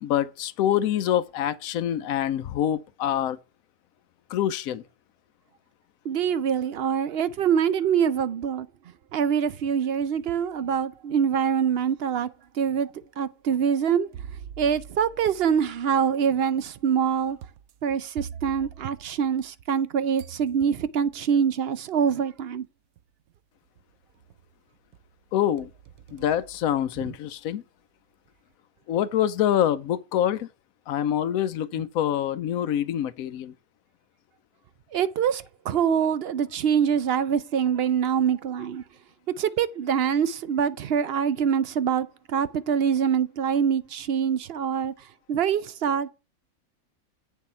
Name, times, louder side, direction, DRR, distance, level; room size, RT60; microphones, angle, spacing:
voice 1, 0.0-3.4 4.3-4.8 25.3-25.7 26.1-27.6 28.9-30.5 30.9-33.5, left 10 dB, 80° left, 1.1 m, -25 dB
voice 2, 6.0-8.7 9.1-12.3 12.5-14.1 14.6-17.4 17.8-22.7 34.9-38.8 39.4-46.1, right 7 dB, 60° right, 0.7 m, -25 dB
sound 1, 9.7-10.6 11.1-11.2 12.1-12.2 14.1-19.8 20.2-21.2 22.3-22.4 23.0-23.4 23.8-24.5 24.9-27.3, right 9 dB, 90° right, 1.2 m, -45 dB
8.3 x 6.6 x 4.4 m
omnidirectional pair, 1.5 m